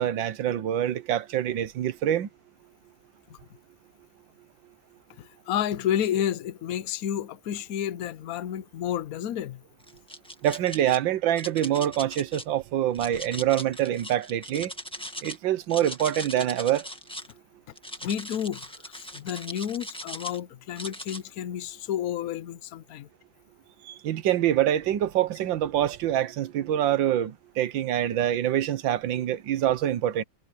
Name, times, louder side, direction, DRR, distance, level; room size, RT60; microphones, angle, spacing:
voice 1, 0.0-2.3 10.4-14.7 15.2-16.9 23.8-30.2, right 11 dB, 80° right, 1.7 m, -25 dB
voice 2, 5.2-9.6 18.0-23.1, left 10 dB, 60° left, 1.1 m, -31 dB
Shaking Mints, 9.8-11.0 11.4-12.4 12.9-15.4 15.6-17.3 17.8-20.4 20.8-21.2, equal, 5° left, 1.5 m, -39 dB
omnidirectional pair, 2.0 m